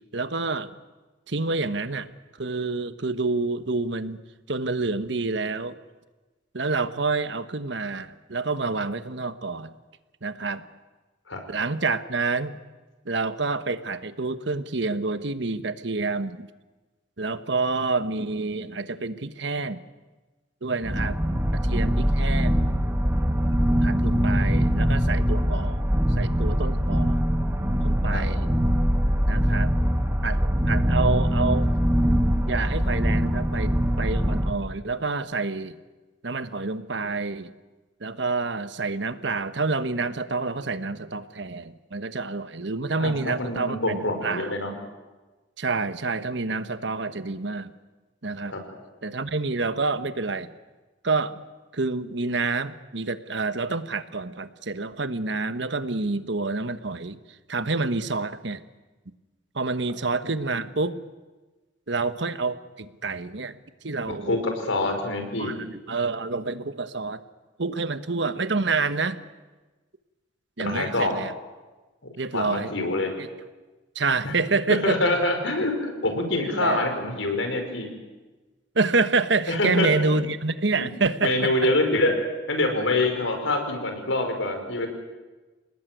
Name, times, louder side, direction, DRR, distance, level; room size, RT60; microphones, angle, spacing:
voice 1, 0.1-0.7 1.3-2.1 2.4-4.2 4.5-5.8 6.5-9.7 10.2-10.7 11.5-12.6 13.1-16.5 17.2-19.8 20.6-21.2 21.5-22.7 23.8-25.8 26.2-27.2 27.8-28.5 29.3-29.7 30.2-31.7 32.4-35.8 36.2-37.5 38.0-44.5 45.6-47.7 48.2-48.6 49.0-50.5 51.0-51.4 51.7-57.2 57.5-58.6 59.5-61.0 61.9-63.6 63.8-64.4 65.4-67.2 67.6-69.2 70.6-71.3 72.2-72.7 73.2-73.3 73.9-75.0 76.5-76.9 78.7-81.7, right 3 dB, 65° right, 12 dB, 1.2 m, -28 dB
sound 1, 20.8-34.5, equal, 10° right, 1.6 m, -22 dB
voice 2, 43.0-44.7 48.5-48.6 64.0-64.4 64.6-65.5 70.6-71.1 72.3-73.1 74.2-74.3 74.8-77.9 79.5-80.2 80.8-80.9 81.2-82.1 82.5-84.9, left 2 dB, 85° left, 4 dB, 5.4 m, -25 dB
28.0 x 19.5 x 9.3 m, 1.2 s
head